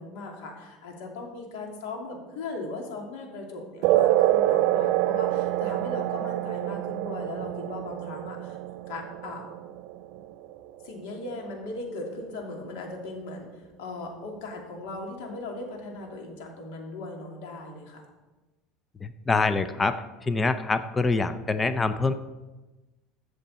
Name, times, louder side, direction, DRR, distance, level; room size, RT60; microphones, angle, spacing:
voice 1, 0.0-8.6 8.9-9.5 10.8-18.1, left 2 dB, 80° left, 1 dB, 2.7 m, -38 dB
sound 1, 3.8-10.8, right 14 dB, 65° right, 0.3 m, -26 dB
voice 2, 19.0-20.0 20.2-22.1, left 3 dB, 15° left, 10 dB, 0.5 m, -25 dB
15.0 x 6.6 x 4.2 m, 1.1 s
supercardioid pair, 135°, 0 cm